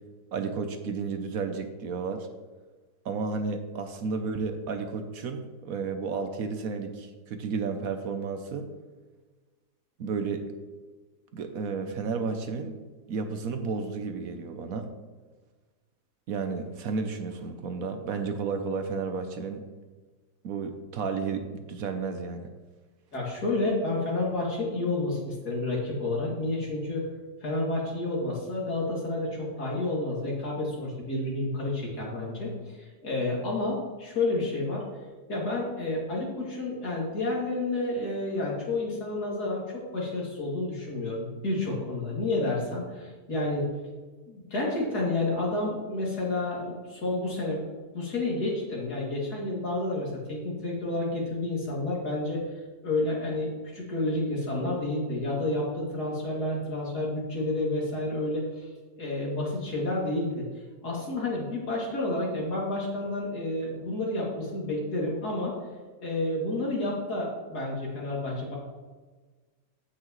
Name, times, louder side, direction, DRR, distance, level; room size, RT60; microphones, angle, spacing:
voice 1, 0.3-2.3 3.0-8.7 10.0-10.5 11.3-12.8 13.1-14.9 16.3-19.7 20.4-22.5, right 4 dB, 65° right, 7 dB, 1.1 m, -32 dB
voice 2, 23.1-27.1 27.4-34.8 35.3-43.7 44.3-47.6 47.9-52.5 52.8-58.7 59.0-60.4 60.8-65.5 66.0-68.6, left 2 dB, 70° left, -4 dB, 3.2 m, -30 dB
15.0 x 6.0 x 3.1 m, 1.3 s
omnidirectional pair, 1.7 m